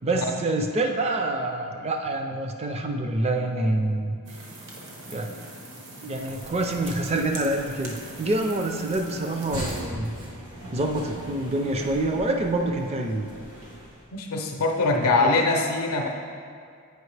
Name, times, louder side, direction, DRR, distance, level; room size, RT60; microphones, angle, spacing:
voice 1, 0.0-4.2 5.1-5.4 6.0-10.1 10.7-13.3 14.9-15.4, right 2 dB, 30° right, 3 dB, 0.4 m, -27 dB
sound 1, 4.3-9.8, right 2 dB, 55° right, 0.9 m, -42 dB
sound 2, 6.2-14.1, equal, 80° right, 1.4 m, -40 dB
voice 2, 14.1-16.1, left 3 dB, 80° left, 1 dB, 0.5 m, -23 dB
8.0 x 5.1 x 3.3 m, 2.2 s
head